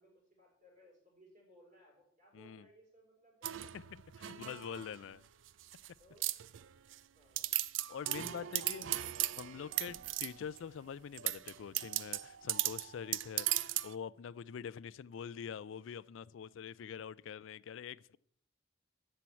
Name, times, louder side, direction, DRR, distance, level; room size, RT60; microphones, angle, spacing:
voice 1, 0.0-3.7 4.2-5.0 6.0-6.3 7.2-7.5 7.9-10.1, right 1 dB, 40° right, 6.0 m, -62 dB
voice 2, 2.3-2.7 3.7-5.2 7.9-8.9 9.4-18.2, left 7 dB, 70° left, 0.3 m, -45 dB
sound 1, 3.4-5.0 5.5-5.9 6.2-7.0 7.4-10.6 11.1-13.9, right 15 dB, 70° right, 0.4 m, -37 dB
13.0 x 4.5 x 8.4 m
head